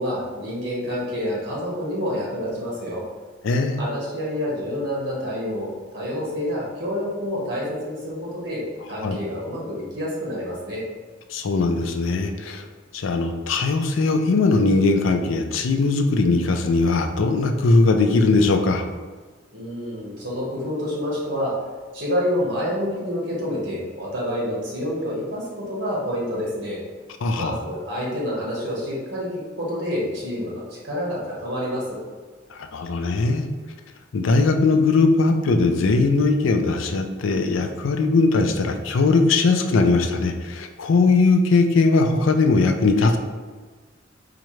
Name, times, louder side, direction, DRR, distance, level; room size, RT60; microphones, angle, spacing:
voice 1, 0.0-3.0 3.8-8.6 8.9-10.8 19.5-21.5 21.9-26.8 27.4-29.3 29.6-32.0, equal, 60° right, -5 dB, 1.1 m, -28 dB
voice 2, 3.4-3.8 9.0-9.2 11.3-12.6 12.9-18.8 27.2-27.6 32.5-33.5 34.1-43.2, left 3 dB, 75° left, 5 dB, 0.4 m, -20 dB
4.2 x 2.5 x 3.0 m, 1.4 s
head